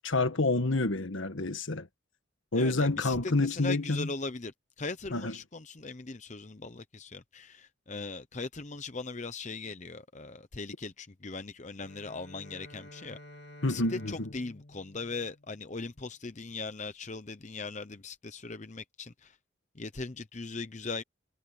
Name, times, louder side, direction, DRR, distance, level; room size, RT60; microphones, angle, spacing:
voice 1, 0.0-1.9 2.5-4.1 5.1-5.3 13.6-14.1, left 2 dB, 70° left, 1.5 m, -28 dB
voice 2, 2.5-13.2 13.6-19.4 19.7-21.0, left 3 dB, 35° left, 0.8 m, -39 dB
Bowed string instrument, 11.7-16.1, left 1 dB, 55° left, 3.1 m, -51 dB
head